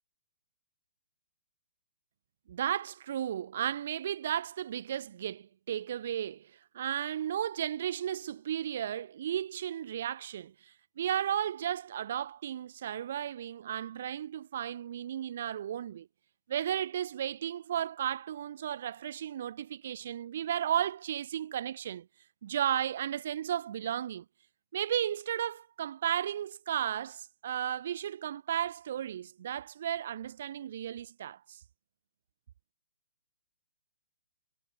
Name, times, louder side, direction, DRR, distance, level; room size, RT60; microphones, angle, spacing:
voice 1, 2.5-10.5 11.0-16.1 16.5-22.1 22.4-24.2 24.7-31.6, right 10 dB, 50° right, 0.4 m, -34 dB
hypercardioid pair, 165°, 0 cm